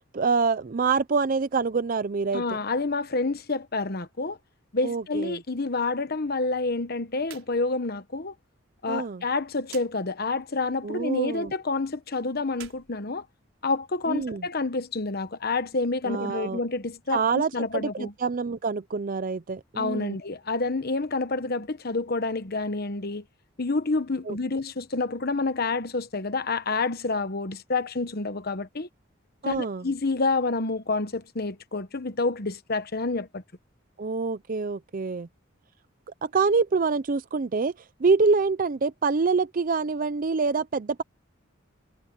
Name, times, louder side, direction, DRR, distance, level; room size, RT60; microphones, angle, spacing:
voice 1, 0.1-2.6 4.8-5.4 8.9-9.2 10.8-11.5 14.1-14.5 16.0-16.6 17.1-20.2 24.3-24.4 29.4-29.9 34.0-35.3 36.2-37.7 38.0-41.0, right 4 dB, 40° right, 0.5 m, -26 dB
voice 2, 2.3-4.4 4.7-8.3 8.8-13.2 13.6-18.1 19.8-23.2 23.6-28.9 29.5-33.4, left 3 dB, 50° left, 1.1 m, -28 dB
sound 1, 7.2-7.5 7.8-7.9 9.6-9.9 12.5-13.8, right 10 dB, 75° right, 5.0 m, -47 dB
head